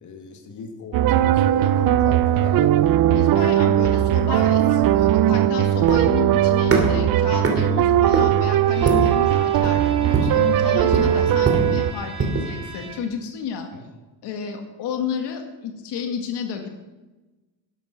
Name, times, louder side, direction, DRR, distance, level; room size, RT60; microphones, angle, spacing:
voice 1, 0.0-2.7 3.3-3.6 13.7-13.8, left 5 dB, 45° left, 4 dB, 2.1 m, -36 dB
sound 1, 0.9-11.9, right 12 dB, 55° right, 0.6 m, -19 dB
voice 2, 3.1-13.7 14.2-16.7, left 6 dB, 75° left, 5 dB, 1.9 m, -31 dB
sound 2, 3.8-12.5, right 3 dB, 35° right, 2.7 m, -26 dB
Bowed string instrument, 8.6-13.3, right 2 dB, 15° right, 2.7 m, -40 dB
12.0 x 11.5 x 5.9 m, 1.1 s
cardioid pair, 125°, 41 cm